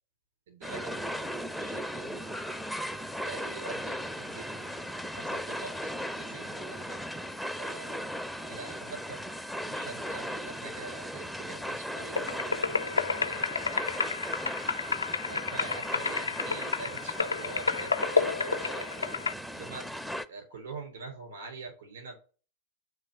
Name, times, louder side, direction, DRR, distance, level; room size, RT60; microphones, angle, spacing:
voice 1, 0.5-2.3 3.2-4.7 5.1-5.7 6.2-7.0 7.6-8.1 8.5-9.2 9.6-13.8 14.1-14.7 15.3-19.1 19.5-19.8 20.3-22.2, right 3 dB, 65° right, 1 dB, 3.5 m, -45 dB
sound 1, 0.6-20.3, equal, ahead, 0.5 m, -37 dB
sound 2, 12.1-19.3, left 5 dB, 75° left, 0.3 m, -31 dB
8.0 x 3.3 x 5.2 m, 0.37 s
figure-of-eight pair, 90°, 0 cm